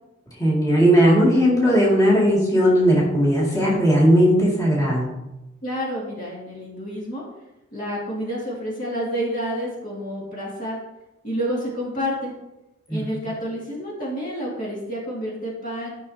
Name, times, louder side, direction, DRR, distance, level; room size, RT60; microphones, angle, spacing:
voice 1, 0.4-5.1 12.9-13.0, equal, 15° left, -6 dB, 2.3 m, -17 dB
voice 2, 5.6-7.2 7.7-10.8 11.2-12.3 12.9-15.9, equal, 40° left, -4 dB, 2.2 m, -29 dB
11.5 x 6.3 x 2.8 m, 0.95 s
head